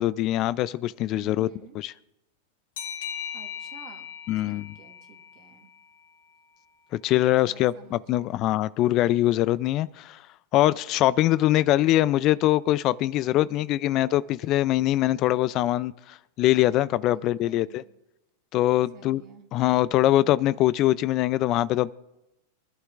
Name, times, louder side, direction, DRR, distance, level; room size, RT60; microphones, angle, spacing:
voice 1, 0.0-1.5 1.8-1.9 4.3-4.7 6.9-10.2 10.5-17.8 18.5-19.2 19.5-21.9, left 15 dB, 45° left, 0.4 m, -23 dB
voice 2, 1.1-1.8 3.3-4.1 4.4-5.7 7.4-8.6 13.0-13.3 17.1-17.8 18.9-19.5, right 7 dB, 45° right, 2.2 m, -51 dB
sound 1, 2.8-6.1, left 8 dB, 75° left, 2.3 m, -39 dB
24.5 x 11.5 x 2.5 m
hypercardioid pair, 115°, 0 cm